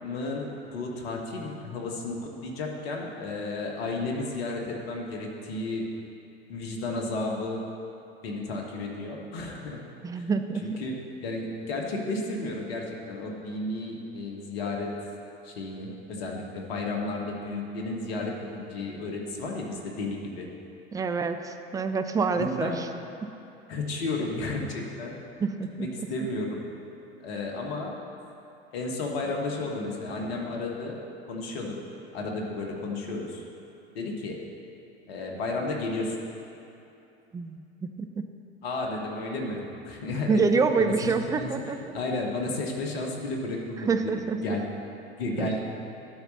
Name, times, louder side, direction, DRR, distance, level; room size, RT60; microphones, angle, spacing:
voice 1, 0.0-5.8 6.5-7.6 8.2-9.8 10.1-10.3 10.6-14.9 15.4-20.5 22.4-22.8 23.7-25.2 25.8-26.6 27.2-27.9 28.7-31.0 31.3-31.8 32.1-33.4 33.9-34.4 35.1-36.2 38.6-40.4 40.8-41.5 41.9-44.1 44.4-44.6 45.2-45.6, left 2 dB, 65° left, 0 dB, 1.5 m, -32 dB
voice 2, 10.0-10.8 20.9-22.9 25.4-26.1 37.3-38.1 40.3-41.8 43.9-44.4 45.4-45.5, right 4 dB, 10° right, 7 dB, 0.4 m, -27 dB
12.0 x 4.1 x 6.7 m, 2.8 s
figure-of-eight pair, 75°, 33 cm